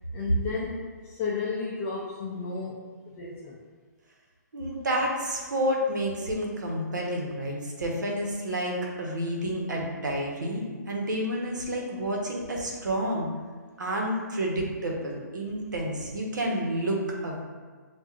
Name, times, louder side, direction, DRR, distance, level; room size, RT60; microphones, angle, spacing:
voice 1, 0.1-0.8 1.0-3.5, left 4 dB, 15° left, -6 dB, 0.4 m, -33 dB
voice 2, 4.5-13.3 13.8-17.4, equal, 85° right, -1 dB, 1.1 m, -30 dB
7.2 x 2.5 x 2.4 m, 1.5 s
hypercardioid pair, 165°, 10 cm